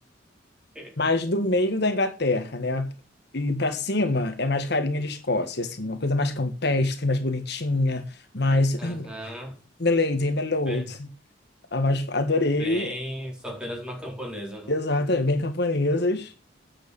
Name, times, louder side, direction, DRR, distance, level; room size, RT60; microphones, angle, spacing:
voice 1, 1.0-2.9 3.3-8.0 8.3-9.1 9.8-11.1 11.7-12.9 14.7-16.3, left 2 dB, 60° left, 1.5 m, -25 dB
voice 2, 8.8-9.6 10.7-10.9 12.6-14.7, equal, 5° right, 4.3 m, -35 dB
9.5 x 7.5 x 7.1 m
head